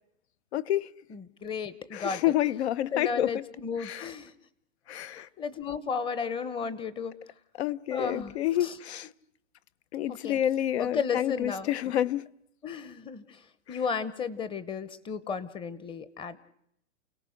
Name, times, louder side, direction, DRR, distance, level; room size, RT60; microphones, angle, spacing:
voice 1, 0.5-0.9 1.9-3.4 3.8-4.1 4.9-5.3 7.6-9.1 9.9-12.3 13.7-13.8, left 12 dB, 55° left, 0.8 m, -29 dB
voice 2, 1.1-2.2 2.9-4.3 5.0-7.1 7.9-8.8 10.1-10.4 10.8-11.9 12.6-13.4 13.7-16.4, left 6 dB, 15° left, 0.9 m, -34 dB
29.5 x 18.0 x 6.4 m
hypercardioid pair, 135°, 39 cm